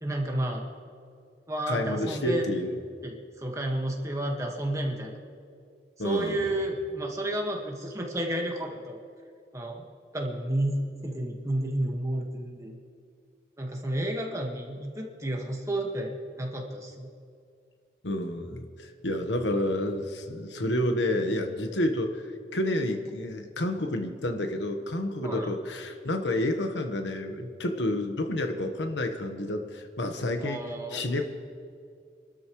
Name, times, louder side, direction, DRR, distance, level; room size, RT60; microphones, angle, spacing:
voice 1, 0.0-0.7 1.5-2.5 3.0-5.2 6.0-9.0 9.5-9.8 10.1-12.8 13.6-17.1 25.2-25.5 30.4-31.0, right 1 dB, 15° right, 0 dB, 1.7 m, -31 dB
voice 2, 1.7-2.8 6.0-6.6 18.0-22.2 22.5-31.3, left 1 dB, 90° left, 5 dB, 1.3 m, -29 dB
27.5 x 12.5 x 3.2 m, 2.3 s
head